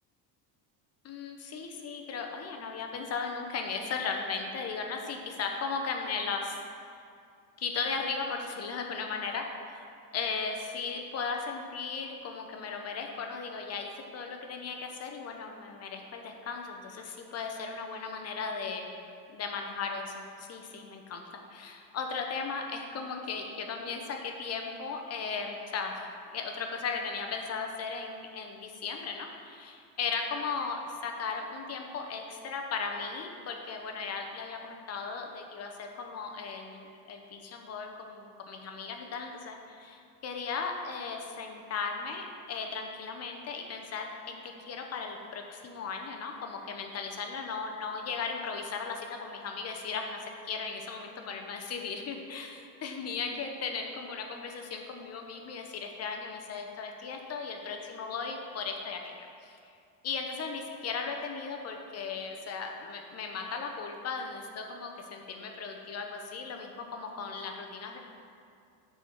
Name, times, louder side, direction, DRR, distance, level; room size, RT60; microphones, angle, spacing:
voice 1, 1.0-6.6 7.6-9.9 10.1-18.8 19.3-21.2 21.5-59.6 60.0-68.0, left 5 dB, 35° left, 3 dB, 0.8 m, -37 dB
6.7 x 4.3 x 6.4 m, 2.3 s
cardioid pair, 130°, 46 cm